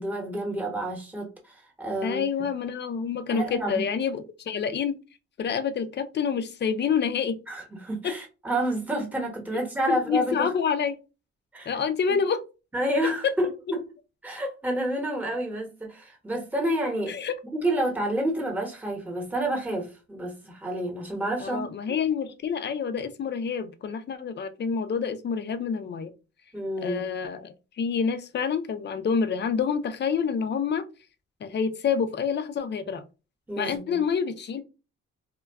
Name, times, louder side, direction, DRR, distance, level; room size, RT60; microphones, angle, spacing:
voice 1, 0.0-2.2 3.3-3.8 7.5-10.5 11.5-11.8 12.1-12.2 12.7-13.8 14.2-17.2 17.5-21.6 26.5-27.0 33.5-34.0, right 1 dB, 5° right, 0.9 m, -29 dB
voice 2, 2.0-5.0 5.4-7.4 8.0-8.1 9.9-11.0 11.7-12.4 13.2-13.3 17.1-17.3 21.4-26.1 26.8-30.8 31.4-33.0 33.6-34.6, left 6 dB, 35° left, 0.4 m, -27 dB
2.2 x 2.2 x 3.4 m
cardioid pair, 90°, 30 cm